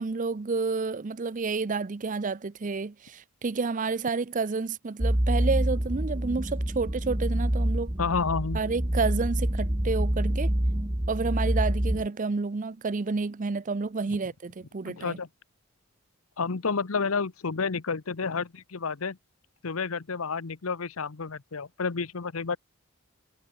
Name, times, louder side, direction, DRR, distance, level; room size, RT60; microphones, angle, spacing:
voice 1, 0.0-7.9 8.5-10.5 11.1-15.2, right 4 dB, 35° right, 0.5 m, -30 dB
sound 1, 5.0-12.1, right 1 dB, 20° right, 1.4 m, -27 dB
voice 2, 8.0-8.6 14.1-14.2 14.8-15.3 16.4-19.2 19.6-22.6, left 5 dB, 75° left, 0.9 m, -30 dB
head